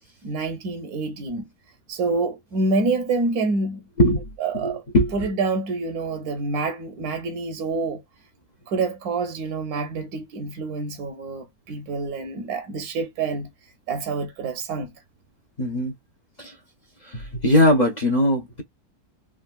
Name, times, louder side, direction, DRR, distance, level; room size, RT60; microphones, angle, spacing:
voice 1, 0.2-1.5 1.9-3.8 4.4-4.8 5.1-8.0 8.7-13.5 13.9-14.9, right 3 dB, 75° right, 1.1 m, -27 dB
voice 2, 4.0-4.3 4.6-5.3 15.6-15.9 16.4-16.6 17.0-18.6, left 1 dB, 45° left, 0.5 m, -20 dB
3.5 x 2.3 x 2.2 m
omnidirectional pair, 1.7 m